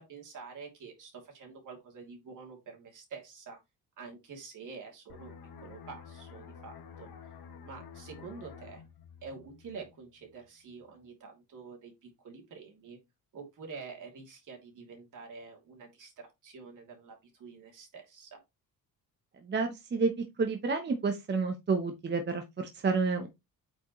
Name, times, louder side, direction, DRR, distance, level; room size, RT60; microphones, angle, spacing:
voice 1, 0.0-3.6 4.0-7.1 7.6-8.8 9.2-13.0 13.3-18.4, right 5 dB, 55° right, 1 dB, 2.9 m, -47 dB
sound 1, 5.1-10.5 10.8-11.1, left 6 dB, 80° left, 1.6 m, -50 dB
voice 2, 19.4-23.3, right 4 dB, 30° right, 5 dB, 0.9 m, -30 dB
8.5 x 4.9 x 3.1 m, 0.21 s
wide cardioid pair, 170°, 36 cm